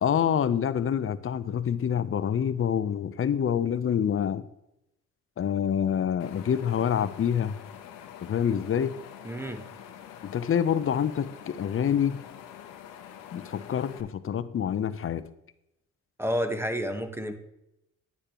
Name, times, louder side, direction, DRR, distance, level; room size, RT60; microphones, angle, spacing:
voice 1, 0.0-4.4 5.4-7.6 8.2-8.9 10.2-12.2 13.3-15.3, left 8 dB, 45° left, 15 dB, 0.7 m, -27 dB
Wind, 6.2-14.0, left 9 dB, 80° left, 0.9 m, -46 dB
voice 2, 9.2-9.6 16.2-17.3, equal, 10° right, 7 dB, 1.2 m, -30 dB
9.8 x 8.3 x 3.0 m, 0.85 s
supercardioid pair, 55°, 31 cm